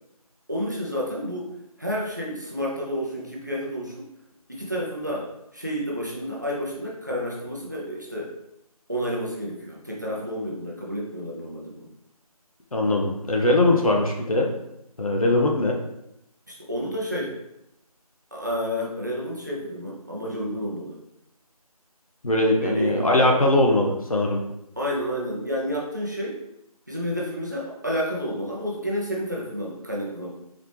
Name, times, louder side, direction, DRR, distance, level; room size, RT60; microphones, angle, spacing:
voice 1, 0.5-1.5 1.8-4.0 4.5-5.3 5.5-8.3 8.9-11.9 16.5-17.3 18.3-21.0 22.6-23.2 24.8-26.4 26.9-30.3, equal, 30° right, -4 dB, 0.6 m, -30 dB
voice 2, 12.7-14.5 15.0-15.8 22.2-24.4, left 2 dB, 65° left, 0 dB, 0.9 m, -21 dB
4.0 x 3.3 x 2.9 m, 0.83 s
figure-of-eight pair, 175°, 20 cm